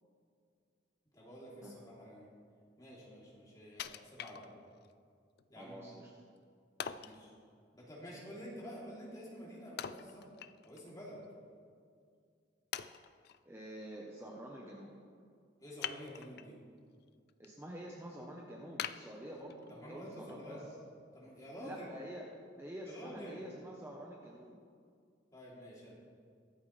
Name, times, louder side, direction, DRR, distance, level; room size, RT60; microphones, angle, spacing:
voice 1, 1.1-2.3 2.8-4.5 5.5-5.9 7.0-7.3 7.7-10.2 10.6-11.2 15.6-16.5 19.7-20.7 21.1-21.9 22.8-23.4 25.3-25.9, equal, 20° left, -6 dB, 3.3 m, -49 dB
Wood, 3.8-4.9 5.4-5.5 6.8-7.2 9.8-10.9 11.2-11.3 12.0-12.1 12.7-13.4 15.8-16.5 17.0-17.5 17.9-18.0 18.8-19.8 20.3-20.4, left 9 dB, 55° left, 0.4 m, -43 dB
voice 2, 5.6-6.1 13.5-14.9 17.4-20.6 21.6-22.3 22.6-24.6, equal, 15° right, -2 dB, 1.0 m, -47 dB
22.5 x 8.1 x 3.4 m, 2.2 s
head